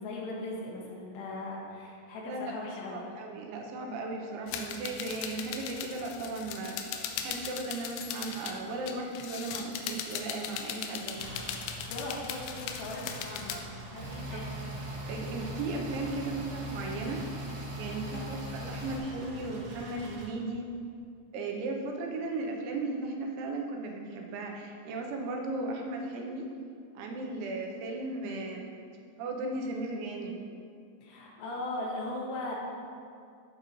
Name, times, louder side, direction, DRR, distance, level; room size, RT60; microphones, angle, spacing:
voice 1, 0.0-3.1 11.9-13.6 13.9-14.5 18.1-18.3 31.0-32.6, left 2 dB, 75° left, -2 dB, 3.3 m, -38 dB
voice 2, 2.9-11.6 13.5-13.6 14.3-14.4 15.1-17.2 17.7-20.7 21.3-26.5 27.0-28.7 29.2-30.5, right 2 dB, 80° right, 1 dB, 3.2 m, -36 dB
sound 1, 4.5-8.5 8.9-13.6, left 8 dB, 90° left, 3.0 m, -38 dB
sound 2, 11.2-20.3, right 1 dB, 65° right, 3.3 m, -46 dB
sound 3, 14.0-19.0, equal, 45° right, 2.2 m, -40 dB
14.0 x 7.4 x 3.1 m, 2.4 s
omnidirectional pair, 5.3 m